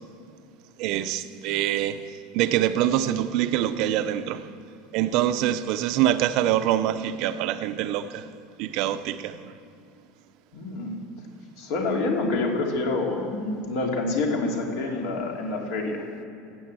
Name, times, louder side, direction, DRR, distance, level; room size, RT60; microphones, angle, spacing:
voice 1, 0.8-4.5 4.9-8.3 8.6-9.5, right 12 dB, 50° right, 0.6 m, -25 dB
voice 2, 10.5-10.9 11.6-16.1, left 3 dB, 60° left, 2.7 m, -27 dB
16.0 x 9.1 x 7.6 m
supercardioid pair, 165°, 0 cm